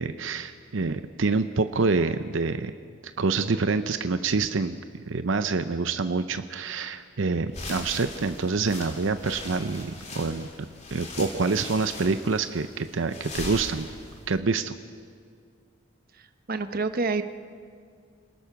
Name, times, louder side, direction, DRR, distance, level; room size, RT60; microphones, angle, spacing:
voice 1, 0.0-2.7 3.2-4.8 5.1-10.5 10.9-13.9 14.3-14.8, right 4 dB, 75° right, 10 dB, 0.7 m, -26 dB
sound 1, 7.5-14.4, left 2 dB, 35° left, 3.1 m, -40 dB
voice 2, 16.2-17.2, right 3 dB, 45° right, 10 dB, 0.9 m, -28 dB
28.0 x 19.5 x 5.9 m, 2.2 s
head